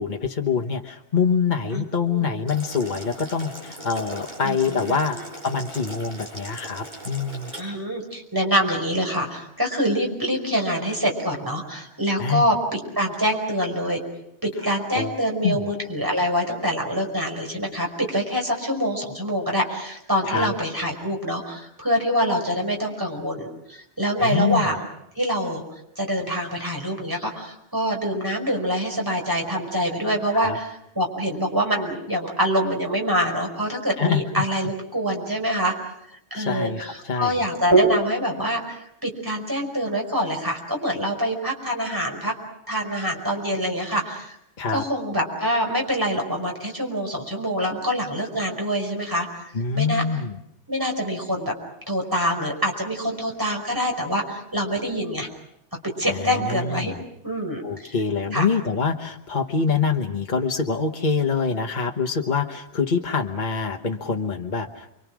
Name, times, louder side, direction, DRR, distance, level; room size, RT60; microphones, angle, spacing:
voice 1, 0.0-5.2 5.4-7.5 12.2-12.4 14.9-15.2 15.4-15.7 20.2-20.5 24.2-24.6 30.3-30.6 34.0-34.2 36.3-37.4 44.6-44.8 49.5-50.4 56.0-57.0 57.6-64.9, left 5 dB, 40° left, 2 dB, 1.4 m, -25 dB
voice 2, 1.7-2.3 4.4-5.2 7.6-14.0 14.4-24.8 25.2-25.6 26.0-30.7 31.0-35.7 36.3-42.3 42.7-44.4 44.7-49.3 49.7-50.0 50.7-51.5 51.9-55.3 56.0-56.9 57.2-58.0 58.3-58.5, equal, 15° right, 1 dB, 5.3 m, -25 dB
Boiling, 2.5-7.6, right 1 dB, 40° right, 6.5 m, -39 dB
29.0 x 24.0 x 6.3 m, 0.76 s
omnidirectional pair, 1.2 m